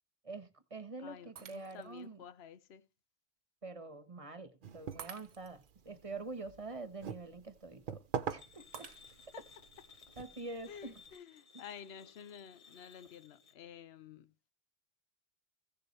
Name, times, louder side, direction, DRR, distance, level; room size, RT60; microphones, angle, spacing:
voice 1, 0.2-2.2 3.6-8.9 10.2-11.0 11.5-11.6, right 3 dB, 35° right, 1.3 m, -46 dB
voice 2, 1.0-2.9 9.3-9.4 10.7-14.3, left 8 dB, 75° left, 1.0 m, -51 dB
Shatter, 1.4-2.1 2.6-2.7 5.0-5.7 8.7-9.5, right 8 dB, 80° right, 1.1 m, -51 dB
sound 1, 4.6-11.1, right 7 dB, 55° right, 0.9 m, -45 dB
sound 2, 8.4-13.6, left 5 dB, 40° left, 0.8 m, -60 dB
15.5 x 6.9 x 3.2 m
omnidirectional pair, 1.1 m